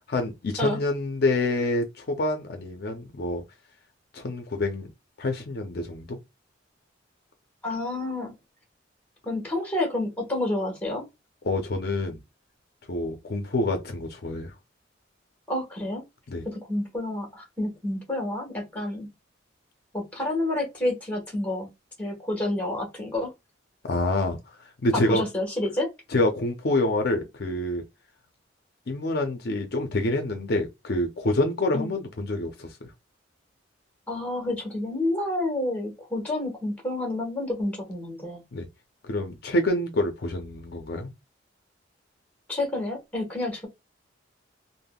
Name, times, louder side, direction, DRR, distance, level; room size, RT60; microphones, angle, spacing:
voice 1, 0.1-3.4 4.1-4.9 5.2-6.2 11.4-12.2 12.9-14.6 16.3-16.4 23.9-24.4 24.8-25.2 26.1-27.8 28.9-32.7 38.5-38.7 39.1-41.1, left 2 dB, 55° left, 0.5 m, -27 dB
voice 2, 7.6-8.3 9.2-11.0 15.5-16.0 16.4-19.1 19.9-21.7 22.0-23.3 25.1-25.9 31.7-31.9 34.1-38.4 42.5-43.7, left 1 dB, 5° left, 1.1 m, -29 dB
3.5 x 2.0 x 2.2 m
head